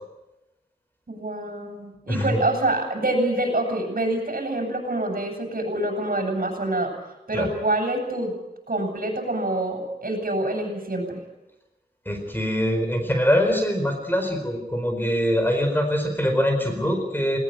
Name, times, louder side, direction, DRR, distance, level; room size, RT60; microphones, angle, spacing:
voice 1, 1.1-6.9 7.3-8.3 8.7-11.0, right 1 dB, 55° right, 2 dB, 7.8 m, -26 dB
voice 2, 2.1-2.4 7.3-7.5 12.0-17.4, equal, 10° left, 4 dB, 4.6 m, -23 dB
20.0 x 19.5 x 9.1 m, 0.99 s
wide cardioid pair, 85°, 17 cm